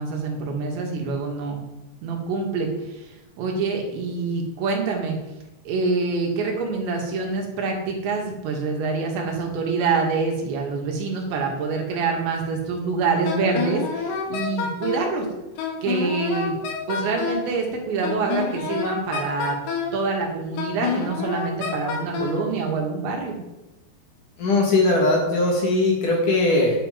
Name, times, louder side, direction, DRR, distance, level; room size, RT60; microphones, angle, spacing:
voice 1, 0.0-1.6 2.0-5.2 5.7-15.3 15.8-16.6 16.9-19.6 19.9-23.4, right 4 dB, 85° right, 1 dB, 4.2 m, -26 dB
Wind instrument woodwind instrument, 13.2-15.1 15.6-17.5 18.0-20.0 20.6-22.4, left 5 dB, 80° left, 3.9 m, -28 dB
voice 2, 24.4-26.8, left 2 dB, 55° left, -1 dB, 2.8 m, -19 dB
10.5 x 8.7 x 5.1 m, 0.99 s
omnidirectional pair, 5.0 m